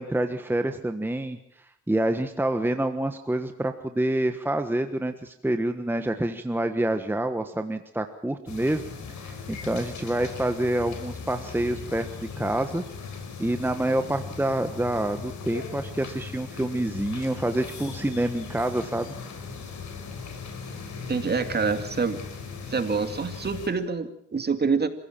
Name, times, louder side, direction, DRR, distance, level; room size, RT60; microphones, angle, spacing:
voice 1, 0.0-1.4 1.9-8.8 9.1-12.8 13.4-19.1, right 1 dB, 5° right, 7 dB, 1.3 m, -27 dB
sound 1, 8.5-23.7, left 5 dB, 70° left, 5.2 m, -38 dB
voice 2, 21.1-22.2 22.7-24.9, right 5 dB, 35° right, 8 dB, 2.4 m, -26 dB
27.0 x 16.0 x 7.4 m, 0.74 s
cardioid pair, 90°, 30 cm